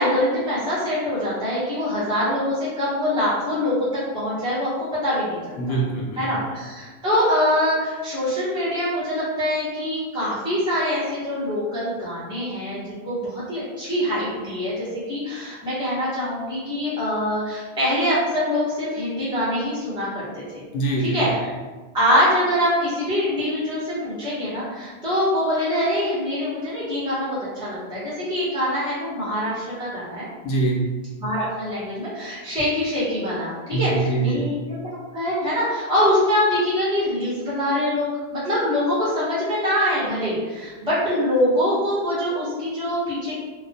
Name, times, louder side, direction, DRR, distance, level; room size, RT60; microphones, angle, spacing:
voice 1, 0.0-3.9 4.1-4.7 5.0-5.8 6.2-20.6 21.1-21.5 21.9-30.3 31.2-43.4, left 1 dB, 5° right, -11 dB, 0.8 m, -24 dB
voice 2, 5.6-6.4 20.7-21.2 30.4-30.9 33.7-34.4, right 3 dB, 75° left, -3 dB, 0.8 m, -24 dB
2.4 x 2.0 x 2.6 m, 1.4 s
omnidirectional pair, 1.1 m